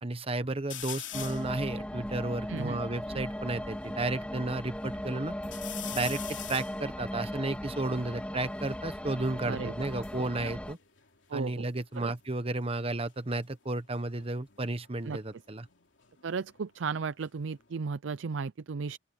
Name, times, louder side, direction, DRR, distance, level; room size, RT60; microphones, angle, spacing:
voice 1, 0.0-5.3 5.9-6.2 6.5-10.8 11.3-15.7, right 2 dB, 30° right, 1.1 m, -33 dB
sound 1, 0.7-1.5 2.1-2.2 2.4-3.9 4.4-5.0 5.4-8.8 9.7-11.6 11.9-12.4 14.0-16.6 17.0-17.7, left 13 dB, 85° left, 3.0 m, -45 dB
sound 2, 1.1-10.7, equal, 5° left, 2.4 m, -37 dB
voice 2, 2.5-2.8 9.5-9.7 10.4-10.5 11.3-11.7 12.0-12.1 15.1-15.2 16.2-19.0, right 5 dB, 85° right, 0.5 m, -35 dB
open air
head